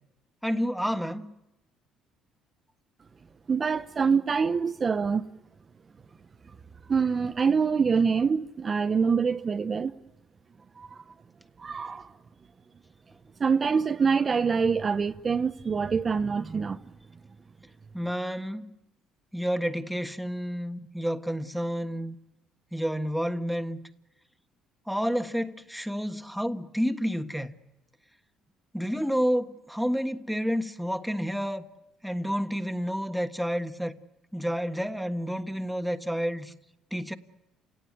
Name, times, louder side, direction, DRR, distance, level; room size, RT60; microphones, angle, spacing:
voice 1, 0.4-1.3 17.9-18.7 19.3-22.2 22.7-23.8 24.9-27.5 28.7-31.6 32.0-33.9 34.3-36.5 36.9-37.1, equal, ahead, 1.5 m, -30 dB
voice 2, 3.5-5.2 6.9-9.9 10.8-11.0 11.6-12.1 13.4-16.8, right 5 dB, 35° right, 0.9 m, -25 dB
29.5 x 17.5 x 9.5 m
cardioid pair, 95°, 0 cm